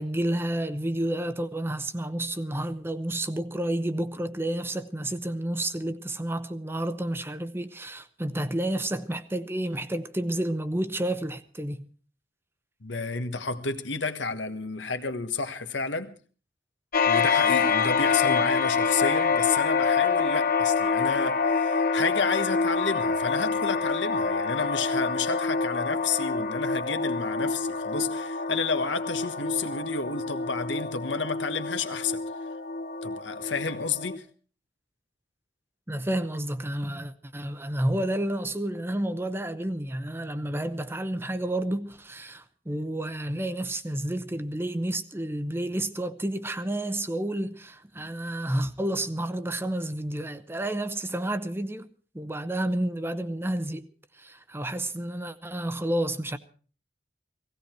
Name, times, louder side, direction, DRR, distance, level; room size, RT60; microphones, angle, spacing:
voice 1, 0.0-11.9 35.9-51.9 52.1-53.9 54.2-56.4, right 1 dB, 15° right, 0.7 m, -30 dB
voice 2, 12.8-16.2 17.1-32.2 33.0-34.2, left 4 dB, 90° left, 1.4 m, -31 dB
sound 1, 16.9-34.2, left 5 dB, 55° left, 1.1 m, -26 dB
17.0 x 16.5 x 4.5 m
head